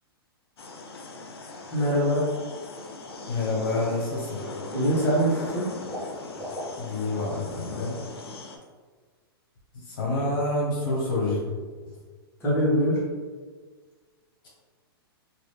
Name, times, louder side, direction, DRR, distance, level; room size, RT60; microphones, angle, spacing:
sound 1, 0.6-8.6, left 3 dB, 80° left, 0.5 m, -39 dB
voice 1, 1.7-2.2 4.7-5.6 12.4-13.0, equal, 20° left, -8 dB, 1.4 m, -23 dB
voice 2, 3.3-4.4 6.8-8.0 9.9-11.4, left 2 dB, 60° left, -4 dB, 1.1 m, -27 dB
Water / Liquid, 3.5-3.6 3.9-4.6 4.9-7.4 7.7-7.9 8.3-8.4, equal, 10° right, 0.9 m, -40 dB
3.0 x 2.6 x 3.3 m, 1.4 s
hypercardioid pair, 120°, 13 cm